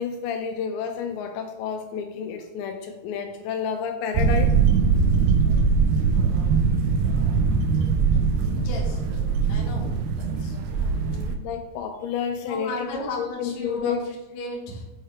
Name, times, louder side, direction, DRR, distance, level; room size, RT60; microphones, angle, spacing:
voice 1, 0.0-4.6 10.9-14.0, left 7 dB, 80° left, 5 dB, 2.7 m, -30 dB
sound 1, 4.2-11.4, right 5 dB, 90° right, 3.0 m, -21 dB
voice 2, 8.5-9.2 9.5-9.9 10.2-10.6 12.4-13.9 14.3-14.8, left 2 dB, 60° left, -4 dB, 1.8 m, -35 dB
8.2 x 4.4 x 3.2 m, 1.0 s
omnidirectional pair, 5.3 m